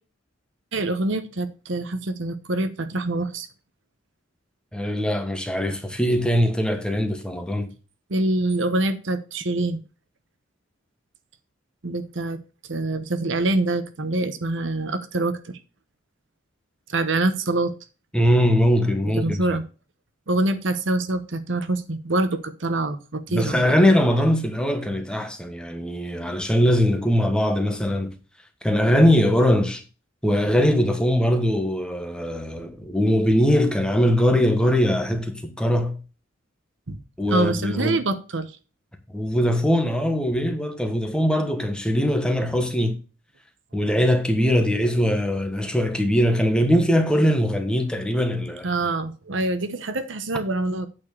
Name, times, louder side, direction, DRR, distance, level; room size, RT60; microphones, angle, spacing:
voice 1, 0.7-3.5 8.1-9.8 11.8-12.4 12.7-15.6 16.9-17.7 19.2-19.6 20.3-23.7 36.9-37.0 37.3-38.5 48.6-50.9, right 2 dB, 65° right, 1.0 m, -25 dB
voice 2, 4.7-7.7 18.1-19.4 23.3-28.1 28.6-29.8 30.2-36.0 37.2-38.0 39.1-43.0 43.7-48.7, equal, 5° left, 1.1 m, -21 dB
8.6 x 4.5 x 6.8 m
head